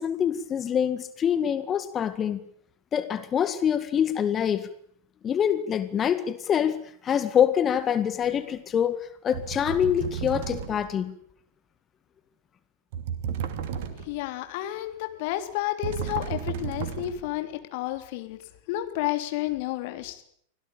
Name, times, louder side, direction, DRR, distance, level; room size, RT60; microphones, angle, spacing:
voice 1, 0.0-2.4 2.9-4.7 5.2-11.2, left 8 dB, 25° left, 1.9 m, -25 dB
sound 1, 8.3-8.5 9.3-11.0 12.9-14.3 15.8-17.4, right 8 dB, 50° right, 2.8 m, -33 dB
voice 2, 14.0-18.4 18.7-20.2, left 14 dB, 50° left, 3.3 m, -31 dB
25.5 x 17.5 x 8.9 m
figure-of-eight pair, 90°, 0 cm